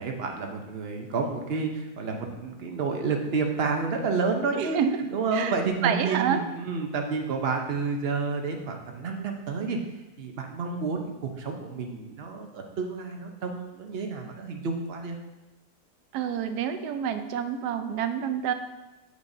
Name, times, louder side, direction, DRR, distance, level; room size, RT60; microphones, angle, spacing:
voice 1, 0.0-4.8 5.1-9.8 10.2-15.2, right 4 dB, 50° right, 3 dB, 0.8 m, -30 dB
voice 2, 4.5-5.0 5.3-5.5 5.8-6.4 16.1-18.5, right 8 dB, 90° right, 9 dB, 1.2 m, -28 dB
8.3 x 6.4 x 2.7 m, 1.0 s
omnidirectional pair, 1.7 m